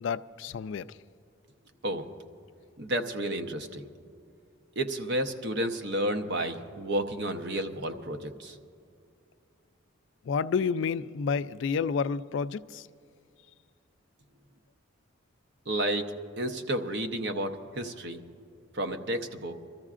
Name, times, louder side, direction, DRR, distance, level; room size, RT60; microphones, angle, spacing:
voice 1, 0.0-0.9 10.3-12.9, left 5 dB, 65° left, 14 dB, 0.3 m, -30 dB
voice 2, 2.8-3.8 4.8-8.6 15.7-16.1 16.4-18.2 18.7-19.5, right 1 dB, 55° right, 6 dB, 0.8 m, -31 dB
25.5 x 13.5 x 2.5 m, 2.4 s
head